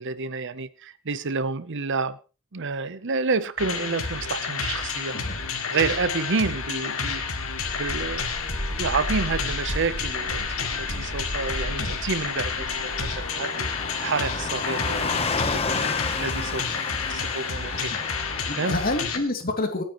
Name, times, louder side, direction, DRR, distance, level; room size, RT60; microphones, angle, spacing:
voice 1, 0.0-2.2 2.5-5.2 5.7-7.2 7.8-8.2 8.8-13.7 14.0-17.9 18.5-18.8, right 4 dB, 60° right, 0.8 m, -29 dB
sound 1, 3.6-19.2, left 5 dB, 75° left, 2.4 m, -30 dB
Car passing by / Truck, 4.7-19.0, left 4 dB, 30° left, 0.9 m, -34 dB
sound 2, 7.6-13.3, equal, 15° right, 2.0 m, -35 dB
voice 2, 17.7-18.0 18.5-19.8, left 2 dB, 45° left, 2.6 m, -28 dB
26.0 x 9.4 x 3.1 m
head